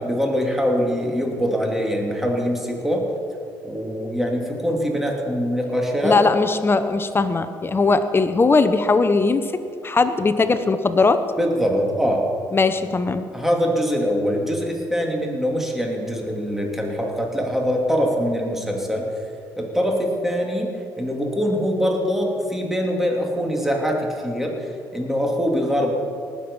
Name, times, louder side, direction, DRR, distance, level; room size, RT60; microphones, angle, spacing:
voice 1, 0.0-3.1 3.6-6.2 11.4-12.3 13.3-19.1 19.6-25.9, equal, 5° right, 0 dB, 2.8 m, -23 dB
voice 2, 6.0-11.2 12.5-13.3, left 3 dB, 30° left, 10 dB, 0.8 m, -19 dB
19.0 x 7.8 x 5.5 m, 2.4 s
supercardioid pair, 75°, 8 cm